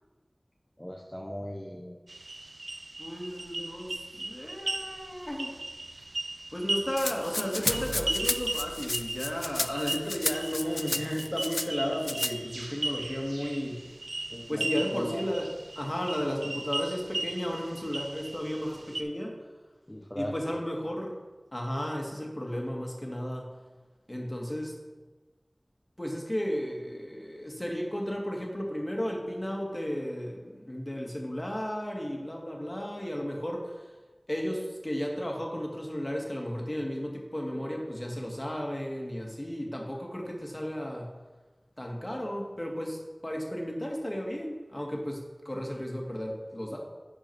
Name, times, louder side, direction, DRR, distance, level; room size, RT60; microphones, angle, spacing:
voice 1, 0.8-2.0 14.3-15.3 19.9-20.6, equal, 15° left, 1 dB, 0.7 m, -38 dB
sound 1, 2.1-19.0, right 2 dB, 90° right, 0.5 m, -37 dB
voice 2, 3.0-5.6 6.5-13.8 14.5-19.4 20.2-21.2 21.5-23.6 24.1-24.8 26.0-33.9 34.3-41.1 41.8-46.8, equal, 30° left, 0 dB, 1.8 m, -34 dB
sound 2, 6.8-9.9, right 1 dB, 25° right, 0.7 m, -42 dB
Rattle (instrument), 7.0-11.7 12.0-12.3, left 2 dB, 70° left, 0.4 m, -33 dB
10.5 x 4.8 x 4.5 m, 1.2 s
wide cardioid pair, 45°, 0 cm